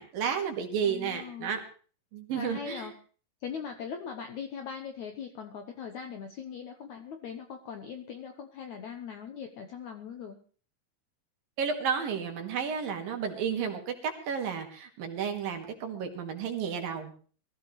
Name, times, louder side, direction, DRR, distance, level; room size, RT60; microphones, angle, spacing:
voice 1, 0.0-1.6 2.1-2.9 11.6-17.1, right 7 dB, 65° right, 4 dB, 3.6 m, -32 dB
voice 2, 0.8-1.5 2.3-2.9 3.4-10.4, left 7 dB, 70° left, 5 dB, 1.8 m, -40 dB
23.0 x 14.5 x 3.2 m, 0.41 s
omnidirectional pair, 4.7 m